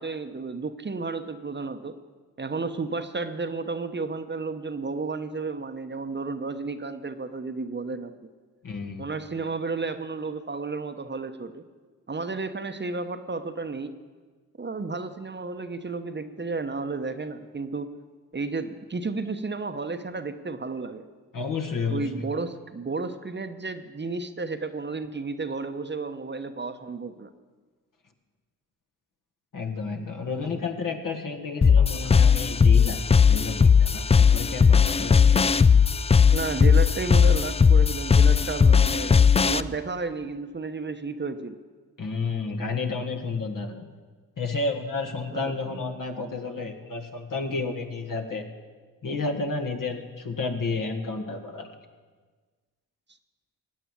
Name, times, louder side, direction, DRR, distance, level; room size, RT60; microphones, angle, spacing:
voice 1, 0.0-2.0 2.4-8.1 9.0-11.6 12.1-14.0 14.6-17.9 18.3-21.1 21.9-27.3 36.3-41.6 45.3-45.8, right 4 dB, 30° right, 8 dB, 1.0 m, -32 dB
voice 2, 8.6-9.1 21.3-22.2 29.5-33.0 33.3-35.5 42.0-43.8 44.4-48.4 49.0-51.8, left 4 dB, 60° left, 4 dB, 1.8 m, -31 dB
sound 1, 31.6-39.6, left 6 dB, 15° left, 0.3 m, -18 dB
16.0 x 9.1 x 7.3 m, 1.4 s
supercardioid pair, 50°, 38 cm